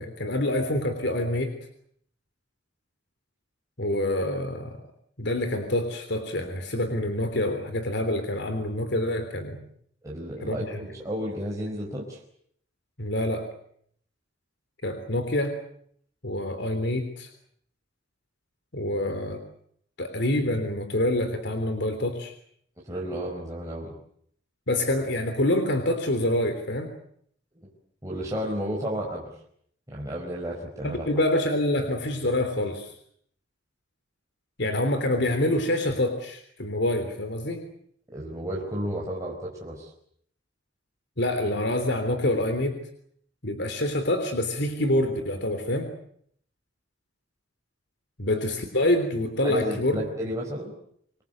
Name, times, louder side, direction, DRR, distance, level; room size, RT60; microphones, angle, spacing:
voice 1, 0.0-1.5 3.8-4.8 5.2-9.6 10.4-10.8 13.0-13.5 14.8-15.6 16.2-17.3 18.7-19.4 20.0-22.3 24.7-26.9 30.8-32.9 34.6-37.6 41.2-42.8 43.4-45.9 48.2-50.0, left 1 dB, 60° left, 8 dB, 3.5 m, -26 dB
voice 2, 10.0-12.2 22.9-23.9 27.6-27.7 28.0-29.3 29.9-31.1 38.1-39.9 49.4-50.7, equal, 15° right, -3 dB, 4.8 m, -32 dB
26.5 x 22.0 x 8.0 m, 0.66 s
head